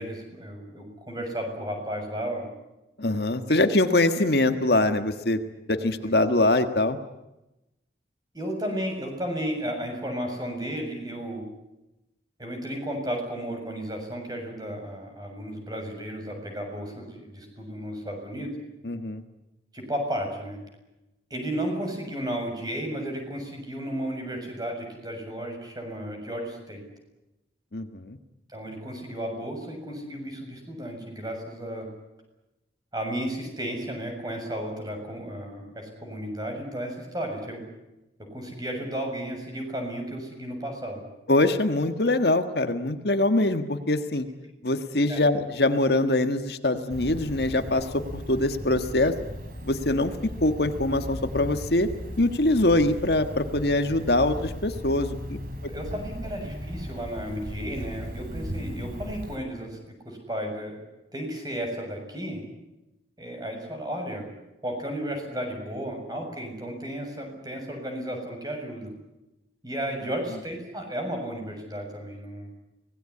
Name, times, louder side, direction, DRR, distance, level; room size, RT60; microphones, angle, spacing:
voice 1, 0.0-2.5 3.5-3.6 5.8-6.1 8.3-11.4 12.4-18.6 19.7-20.6 21.3-26.8 28.5-31.9 32.9-37.6 38.3-41.0 45.1-45.2 55.6-60.8 61.1-62.4 63.2-64.3 64.6-68.9 69.6-72.5, right 1 dB, 20° right, 3 dB, 7.2 m, -33 dB
voice 2, 3.0-5.4 5.7-7.0 18.8-19.2 27.7-28.2 41.3-44.3 44.6-49.1 49.6-50.1 50.4-51.9 52.2-55.4, left 2 dB, 65° left, 8 dB, 1.7 m, -23 dB
Cricket, 46.9-59.4, equal, 50° right, 4.8 m, -37 dB
25.5 x 19.0 x 9.8 m, 0.94 s
head